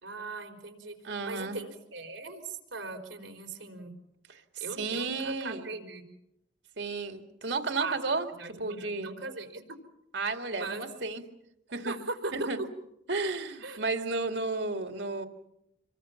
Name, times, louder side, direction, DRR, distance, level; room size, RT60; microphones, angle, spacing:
voice 1, 0.0-0.9 1.2-3.9 4.6-6.1 7.8-7.9 8.4-9.6 10.5-10.9 11.8-12.7 13.6-13.8, right 3 dB, 90° right, 4 dB, 4.2 m, -39 dB
voice 2, 1.0-1.6 4.3-5.7 6.8-8.3 8.6-9.1 10.1-11.2 11.7-12.0 12.3-12.6 13.1-15.3, right 3 dB, 70° right, 6 dB, 2.2 m, -33 dB
27.5 x 23.0 x 5.9 m, 0.82 s
head